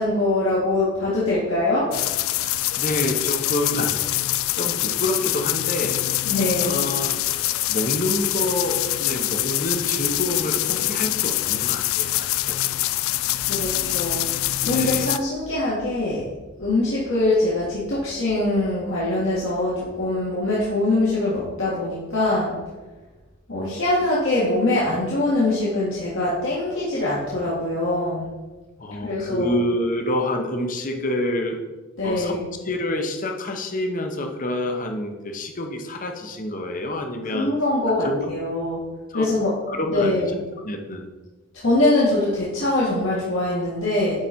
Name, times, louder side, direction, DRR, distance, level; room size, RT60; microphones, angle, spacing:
voice 1, 0.0-1.8 6.3-6.8 13.5-14.2 14.6-16.2 16.6-22.5 23.5-28.3 29.0-29.5 32.0-32.5 37.2-38.8 39.1-39.5 39.9-40.4 41.5-44.2, left 2 dB, 70° left, -8 dB, 1.8 m, -23 dB
sound 1, 1.9-15.2, left 15 dB, 85° left, 0.4 m, -24 dB
voice 2, 2.4-4.0 4.5-6.0 6.6-7.1 7.7-12.8 14.6-15.1 28.8-31.6 32.0-37.5 38.0-38.2 39.1-39.3 39.7-40.3 40.6-41.1, left 1 dB, 40° left, 4 dB, 0.9 m, -27 dB
9.7 x 4.0 x 4.3 m, 1.2 s
head